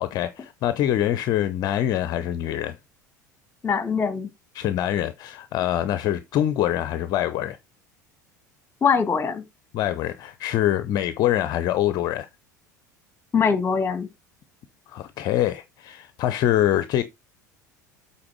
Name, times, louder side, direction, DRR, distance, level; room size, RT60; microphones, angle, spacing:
voice 1, 0.0-2.8 4.5-7.6 9.7-12.3 14.9-17.0, left 12 dB, 45° left, 0.7 m, -24 dB
voice 2, 3.6-4.3 8.8-9.4 13.3-14.1, left 6 dB, 25° left, 1.7 m, -22 dB
8.7 x 4.4 x 4.6 m
figure-of-eight pair, 70°, 10 cm